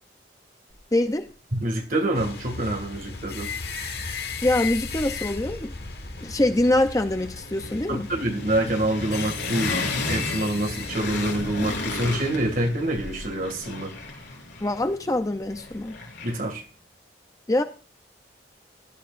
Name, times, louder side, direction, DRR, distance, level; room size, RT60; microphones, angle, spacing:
voice 1, 0.9-1.3 4.4-5.7 6.2-8.1 14.6-16.0 17.5-17.6, left 1 dB, 20° left, 7 dB, 0.6 m, -24 dB
voice 2, 1.5-3.5 7.9-13.9 16.2-16.6, right 1 dB, 50° right, 5 dB, 2.2 m, -26 dB
sound 1, 2.1-12.7, left 5 dB, 60° left, 1.5 m, -36 dB
sound 2, 3.1-4.1 4.4-16.6, left 3 dB, 80° left, 4.9 m, -35 dB
16.0 x 11.5 x 2.5 m, 0.37 s
head